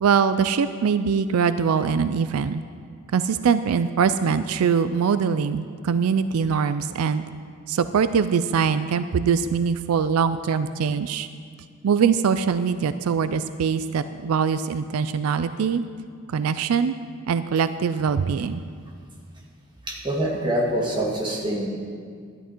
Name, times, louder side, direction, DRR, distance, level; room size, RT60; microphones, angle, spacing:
voice 1, 0.0-2.6 3.1-7.2 7.7-11.3 11.8-15.8 16.3-16.9 17.3-18.6, right 6 dB, 90° right, 12 dB, 0.4 m, -22 dB
voice 2, 19.9-21.7, right 1 dB, 25° right, -2 dB, 1.8 m, -25 dB
12.5 x 11.0 x 4.5 m, 2.1 s
head